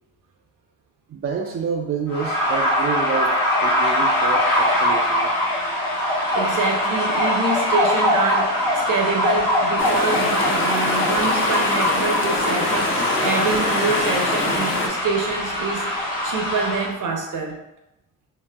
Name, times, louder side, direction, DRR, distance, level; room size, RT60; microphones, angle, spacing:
voice 1, 1.1-5.3, right 5 dB, 35° right, 0 dB, 0.4 m, -28 dB
sound 1, 2.1-16.9, left 1 dB, 60° left, 1.0 m, -22 dB
voice 2, 6.3-15.8 16.2-17.6, right 4 dB, 55° right, 1 dB, 0.8 m, -26 dB
sound 2, 9.8-14.9, left 3 dB, 35° left, 0.6 m, -25 dB
2.8 x 2.0 x 3.4 m, 0.90 s
supercardioid pair, 60°, 38 cm